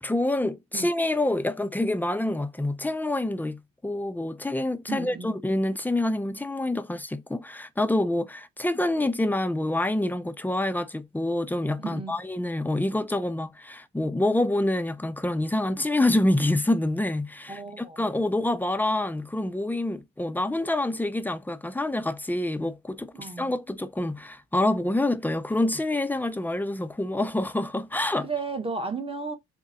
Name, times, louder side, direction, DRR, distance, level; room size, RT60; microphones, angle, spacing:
voice 1, 0.0-28.3, left 1 dB, 5° left, 0.5 m, -27 dB
voice 2, 4.9-5.4 11.8-12.1 17.5-18.0 23.2-23.5 28.2-29.4, right 4 dB, 20° right, 0.9 m, -34 dB
3.8 x 2.2 x 3.7 m
cardioid pair, 90°, 30 cm